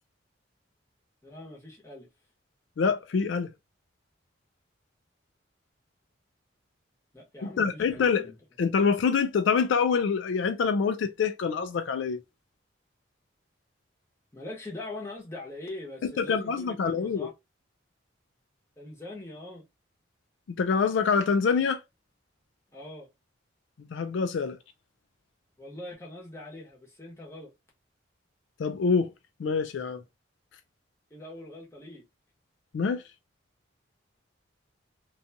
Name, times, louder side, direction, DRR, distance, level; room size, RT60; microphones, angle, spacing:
voice 1, 1.2-2.1 7.1-8.4 14.3-17.3 18.8-19.6 22.7-23.1 25.6-27.5 31.1-32.0, left 2 dB, 15° left, 0.9 m, -42 dB
voice 2, 2.8-3.5 7.6-8.3 8.6-12.2 16.0-17.3 20.5-21.8 23.8-24.6 28.6-29.1 29.4-30.0 32.7-33.0, left 5 dB, 70° left, 0.3 m, -26 dB
2.6 x 2.3 x 2.6 m
head